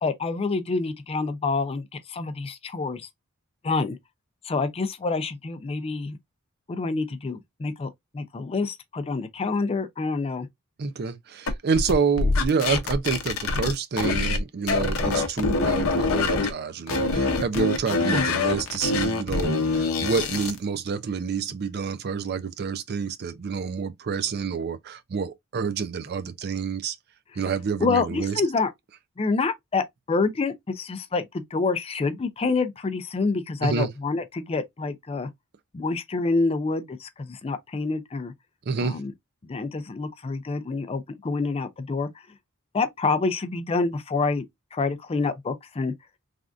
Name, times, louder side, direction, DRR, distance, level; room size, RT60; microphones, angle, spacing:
voice 1, 0.0-3.1 3.6-4.0 4.4-6.2 6.7-10.5 18.1-18.3 27.3-27.4 27.8-28.7 29.2-35.3 35.7-38.3 38.8-39.1 39.4-42.1 42.7-44.4 44.7-45.9, left 3 dB, 25° left, 0.4 m, -27 dB
voice 2, 10.8-27.0 27.4-28.3 33.6-33.9 38.7-39.0, right 5 dB, 45° right, 0.4 m, -28 dB
sound 1, 11.5-14.4 14.7-16.5 16.9-20.6, left 3 dB, 65° left, 0.7 m, -24 dB
3.4 x 2.5 x 2.4 m
head